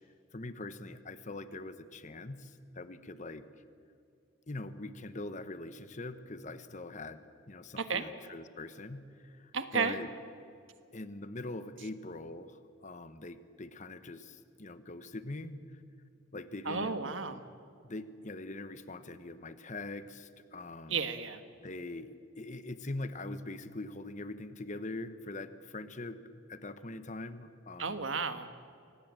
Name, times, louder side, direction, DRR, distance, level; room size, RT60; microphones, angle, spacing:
voice 1, 0.3-3.4 4.5-10.1 10.9-15.8 16.3-17.1 17.8-21.1 21.6-28.1, left 2 dB, 35° left, 12 dB, 1.1 m, -43 dB
voice 2, 9.5-10.0 16.6-17.4 20.9-21.4 27.8-28.5, right 5 dB, 70° right, 10 dB, 1.4 m, -33 dB
25.0 x 19.0 x 7.6 m, 2.5 s
head